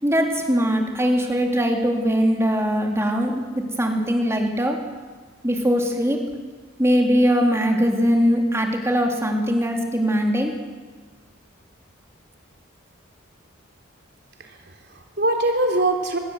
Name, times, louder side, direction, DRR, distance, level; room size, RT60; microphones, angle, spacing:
voice 1, 0.0-4.8 5.4-6.2 6.8-10.5, equal, 15° right, 2 dB, 3.4 m, -21 dB
voice 2, 14.4-16.2, right 2 dB, 55° right, 3 dB, 3.2 m, -23 dB
25.5 x 20.5 x 8.1 m, 1.4 s
head